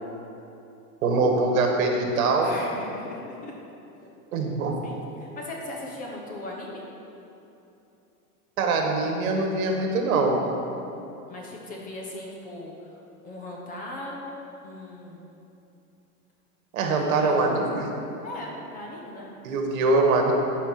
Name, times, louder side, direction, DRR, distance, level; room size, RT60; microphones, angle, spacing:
voice 1, 1.0-2.5 4.3-4.7 8.6-10.4 16.7-17.9 19.4-20.3, right 3 dB, 65° right, 2 dB, 1.8 m, -23 dB
voice 2, 2.4-3.5 4.0-4.1 4.8-6.8 11.3-15.3 16.8-17.6 18.2-19.3, left 1 dB, 20° left, -2 dB, 0.9 m, -39 dB
13.0 x 5.2 x 6.0 m, 2.9 s
supercardioid pair, 160°, 45 cm